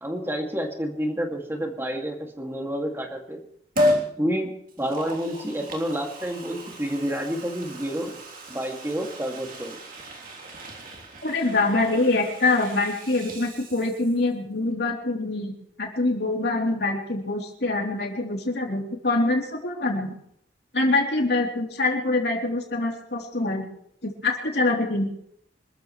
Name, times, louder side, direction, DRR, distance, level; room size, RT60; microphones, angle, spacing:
voice 1, 0.0-3.4 4.2-8.1 8.5-9.8, equal, 15° right, 2 dB, 2.4 m, -29 dB
Liquid, 3.8-4.1 4.7-14.3 14.6-14.7, left 1 dB, 55° right, 3.4 m, -32 dB
voice 2, 11.2-15.5 15.8-20.2 20.7-23.7 24.0-25.1, left 2 dB, 65° left, 0 dB, 3.5 m, -24 dB
26.0 x 13.5 x 3.3 m, 0.71 s
head